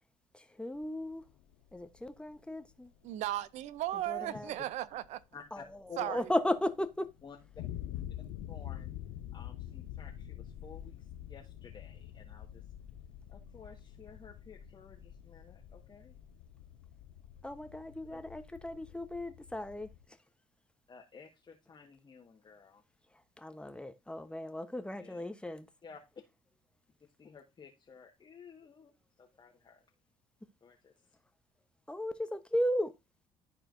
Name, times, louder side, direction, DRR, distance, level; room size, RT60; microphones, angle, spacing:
voice 1, 0.3-1.2 1.7-2.9 4.1-4.5 5.5-5.6 6.0-7.1 17.4-19.9 23.4-25.7 31.9-32.9, left 1 dB, 10° left, 1.0 m, -35 dB
sound 1, 0.8-20.1, left 11 dB, 75° left, 0.6 m, -47 dB
voice 2, 3.0-5.2 6.0-6.2, right 14 dB, 65° right, 0.6 m, -36 dB
voice 3, 5.3-6.2 7.2-7.6 8.5-8.9 9.3-12.6 13.3-16.1 18.1-18.2 20.9-22.8 25.0-25.2 25.8-26.0 27.0-29.8 30.6-31.1, left 5 dB, 35° left, 1.5 m, -52 dB
12.5 x 4.4 x 2.6 m
hypercardioid pair, 55°, 13 cm